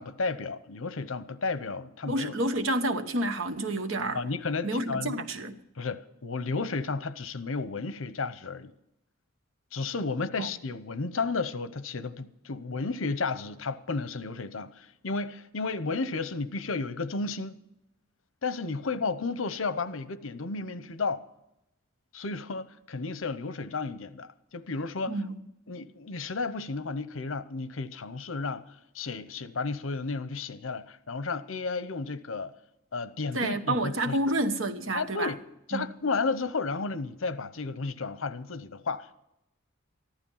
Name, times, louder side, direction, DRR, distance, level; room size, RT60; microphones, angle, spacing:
voice 1, 0.0-2.3 4.1-5.2 5.8-8.7 9.7-17.5 18.4-21.2 22.1-25.1 25.7-28.6 28.9-32.5 32.9-34.2 34.9-35.4 35.7-39.1, left 4 dB, 80° left, 0.8 m, -33 dB
voice 2, 2.0-4.2 4.6-5.6 10.4-10.5 25.1-25.4 33.3-35.3 35.7-35.9, right 1 dB, 75° right, 1.2 m, -29 dB
14.5 x 12.0 x 5.6 m
head